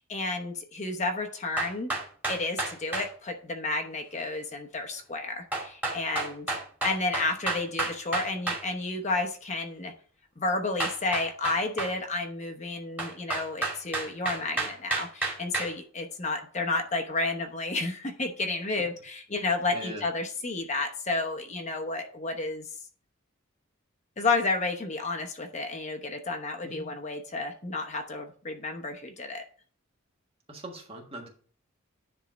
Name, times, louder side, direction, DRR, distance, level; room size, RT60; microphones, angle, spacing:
voice 1, 0.0-1.9 2.3-6.5 6.8-9.9 10.4-22.7 24.2-29.4, left 3 dB, 35° left, 3 dB, 1.0 m, -31 dB
sound 1, 1.6-3.1 5.5-8.6 10.8-11.9 13.0-15.7, right 2 dB, 10° right, 2.1 m, -30 dB
voice 2, 19.7-20.0 26.6-26.9 30.5-31.3, right 1 dB, 25° right, 1 dB, 1.5 m, -41 dB
10.0 x 3.7 x 5.1 m, 0.44 s
head